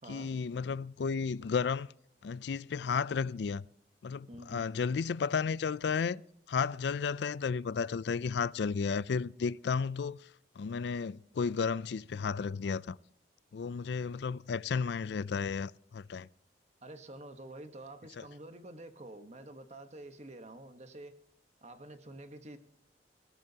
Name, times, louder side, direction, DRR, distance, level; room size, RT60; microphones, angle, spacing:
voice 1, 0.1-1.9 2.2-3.6 4.0-6.2 6.5-10.3 10.6-13.0 13.5-16.3 18.2-18.3, left 5 dB, 65° left, 0.4 m, -33 dB
voice 2, 4.3-4.7 16.8-21.1 21.6-22.6, right 1 dB, 35° right, 1.2 m, -48 dB
20.0 x 12.5 x 2.8 m
head